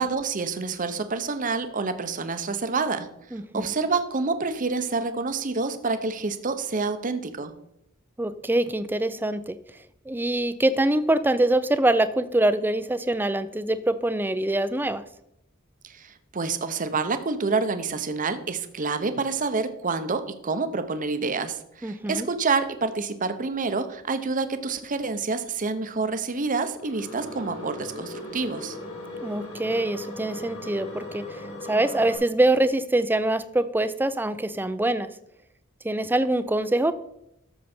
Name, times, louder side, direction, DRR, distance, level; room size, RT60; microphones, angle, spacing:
voice 1, 0.0-3.1 3.5-7.5 15.8-28.8, right 4 dB, 40° right, 10 dB, 0.8 m, -28 dB
voice 2, 3.3-3.7 8.2-9.6 10.1-15.0 21.8-22.3 29.2-35.1 35.8-37.0, right 1 dB, 10° right, 13 dB, 0.5 m, -24 dB
sound 1, 26.8-32.2, left 1 dB, 75° left, 3.7 m, -38 dB
12.5 x 6.8 x 4.4 m, 0.81 s
head